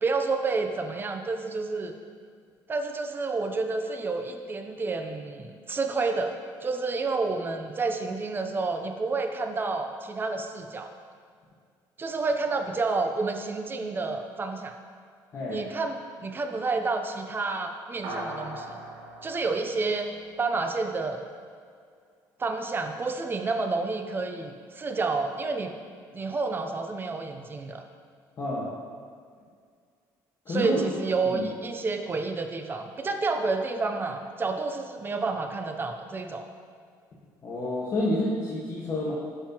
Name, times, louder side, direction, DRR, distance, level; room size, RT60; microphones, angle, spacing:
voice 1, 0.0-1.9 2.7-6.4 6.6-10.9 12.0-14.7 15.5-18.8 19.2-20.1 20.4-21.2 22.4-25.7 26.1-27.8 30.5-36.5, right 3 dB, 25° right, 6 dB, 0.7 m, -29 dB
sound 1, 18.0-20.7, right 1 dB, 85° right, 2.0 m, -40 dB
voice 2, 28.4-28.7 30.4-30.8 31.2-31.5 37.4-39.1, left 1 dB, 40° left, -7 dB, 1.5 m, -29 dB
11.5 x 5.6 x 3.0 m, 2.1 s
cardioid pair, 105°, 8 cm